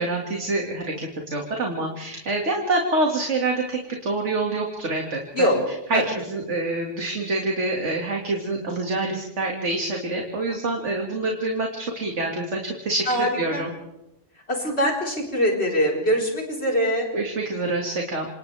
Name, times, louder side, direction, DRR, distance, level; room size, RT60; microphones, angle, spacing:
voice 1, 0.0-13.7 17.1-18.3, right 2 dB, 75° right, 0 dB, 2.5 m, -26 dB
voice 2, 13.1-13.6 14.5-17.1, equal, 60° left, -2 dB, 4.8 m, -23 dB
29.5 x 26.0 x 3.5 m, 0.90 s
omnidirectional pair, 1.2 m